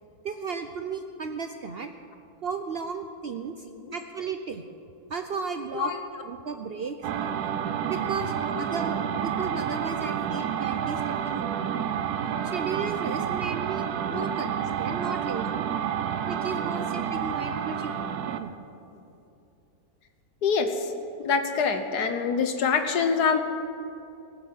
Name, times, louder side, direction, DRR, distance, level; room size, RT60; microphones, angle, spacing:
voice 1, 0.2-1.9 2.4-3.5 3.9-4.6 5.1-5.9 6.3-7.0 7.8-11.6 12.4-15.7 16.3-18.0 18.3-18.5, right 5 dB, 60° right, 7 dB, 0.6 m, -34 dB
sound 1, 7.0-18.5, right 8 dB, 80° right, 1.2 m, -29 dB
voice 2, 20.4-20.9 21.2-23.4, left 5 dB, 90° left, 7 dB, 1.6 m, -25 dB
19.5 x 7.2 x 7.7 m, 2.7 s
omnidirectional pair, 1.7 m